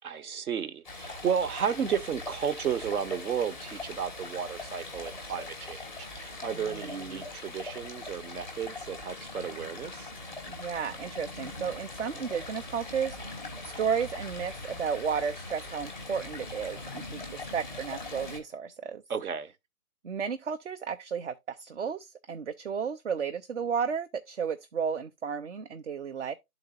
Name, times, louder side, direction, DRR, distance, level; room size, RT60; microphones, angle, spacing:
voice 1, 0.0-10.1 19.1-19.5, right 7 dB, 70° right, 0.9 m, -33 dB
Stream, 0.8-18.4, left 2 dB, ahead, 0.7 m, -41 dB
voice 2, 6.5-7.3 10.5-19.0 20.0-26.3, right 6 dB, 55° right, 0.5 m, -33 dB
11.5 x 3.9 x 2.5 m
hypercardioid pair, 155°, 46 cm